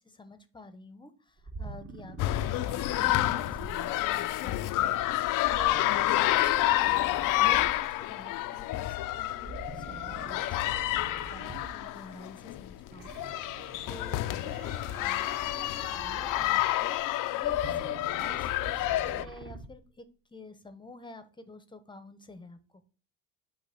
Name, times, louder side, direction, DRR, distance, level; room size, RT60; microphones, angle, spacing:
voice 1, 0.0-2.2 2.5-5.0 5.5-13.2 13.9-17.0 17.4-20.0 20.3-22.6, left 2 dB, 15° left, 0.8 m, -49 dB
sound 1, 1.4-4.4 5.4-8.1 9.3-12.0 12.9-16.9 17.3-19.8, right 4 dB, 35° right, 1.2 m, -45 dB
sound 2, 2.2-19.2, left 15 dB, 60° left, 0.5 m, -29 dB
8.5 x 2.9 x 5.9 m
cardioid pair, 105°, 37 cm